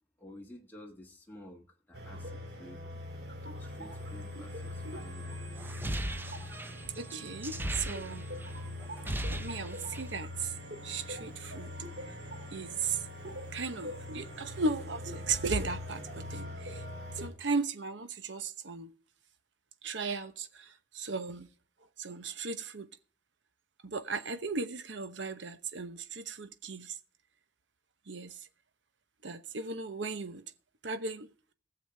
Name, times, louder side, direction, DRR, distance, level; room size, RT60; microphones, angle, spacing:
voice 1, 0.2-2.9 3.6-5.7, left 1 dB, 10° left, 1.7 m, -52 dB
sound 1, 1.9-17.3, left 1 dB, 65° right, 2.7 m, -42 dB
sound 2, 5.6-8.5 8.8-10.2, right 1 dB, 10° right, 0.5 m, -37 dB
voice 2, 7.0-8.3 9.3-10.5 10.8-11.7 12.5-13.0 13.5-16.8 17.1-18.9 19.8-20.7 20.9-21.5 22.0-22.9 23.8-26.9 28.1-28.3 29.2-30.4 30.8-31.3, right 4 dB, 90° right, 0.9 m, -36 dB
18.5 x 7.1 x 3.4 m
head